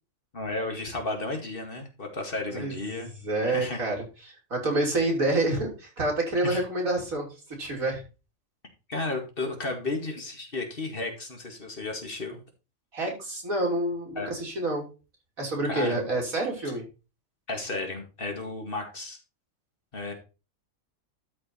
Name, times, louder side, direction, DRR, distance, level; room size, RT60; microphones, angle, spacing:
voice 1, 0.3-3.1 3.4-3.8 6.4-6.6 8.9-12.4 14.2-14.3 15.6-16.1 17.5-19.2 19.9-20.1, left 2 dB, 40° left, 3 dB, 2.2 m, -33 dB
voice 2, 3.2-7.3 7.6-8.0 12.9-14.9 15.4-16.8, right 2 dB, 80° right, -1 dB, 3.6 m, -28 dB
12.5 x 4.7 x 4.3 m, 0.31 s
omnidirectional pair, 1.4 m